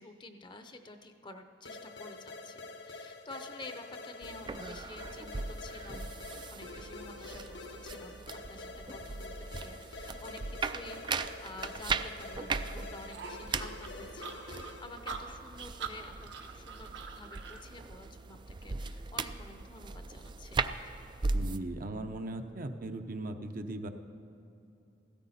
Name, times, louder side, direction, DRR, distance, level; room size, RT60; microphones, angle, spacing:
voice 1, 0.0-20.6, left 2 dB, 25° left, 7 dB, 0.7 m, -50 dB
sound 1, 1.6-15.0, left 3 dB, 75° left, 1.0 m, -46 dB
sound 2, 4.2-21.6, right 4 dB, 25° right, 0.3 m, -39 dB
sound 3, 13.1-17.6, right 5 dB, 75° right, 1.1 m, -43 dB
voice 2, 21.3-23.9, right 2 dB, 50° right, 6 dB, 0.7 m, -38 dB
16.0 x 13.5 x 4.2 m, 2.8 s
head